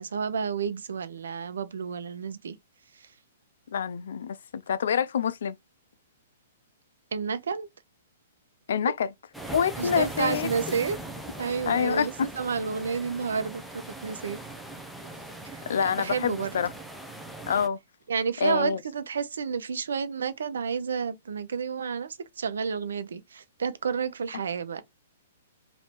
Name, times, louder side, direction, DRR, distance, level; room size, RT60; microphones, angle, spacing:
voice 1, 0.0-2.6 2.9-3.1 7.1-7.7 9.8-11.0 11.4-14.4 15.4-16.5 18.1-24.8, right 6 dB, 80° right, 0.7 m, -30 dB
voice 2, 3.7-5.6 8.7-9.1 9.5-10.5 11.7-12.3 15.7-16.7 17.5-17.8 18.4-18.8, left 7 dB, 75° left, 0.5 m, -26 dB
sound 1, 9.3-17.7, right 2 dB, ahead, 0.7 m, -40 dB
3.2 x 2.7 x 4.4 m
hypercardioid pair, 140°, 0 cm